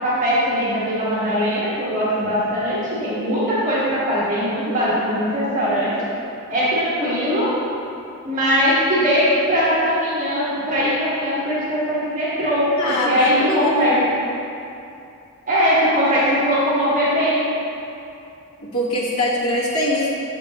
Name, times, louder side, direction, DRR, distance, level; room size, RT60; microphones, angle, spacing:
voice 1, 0.0-6.0 6.5-7.5 8.2-14.0 15.5-17.5, equal, 35° right, -9 dB, 1.6 m, -20 dB
voice 2, 12.8-13.8 18.7-20.1, left 1 dB, 85° left, -7 dB, 1.3 m, -22 dB
7.6 x 6.6 x 2.9 m, 2.7 s
head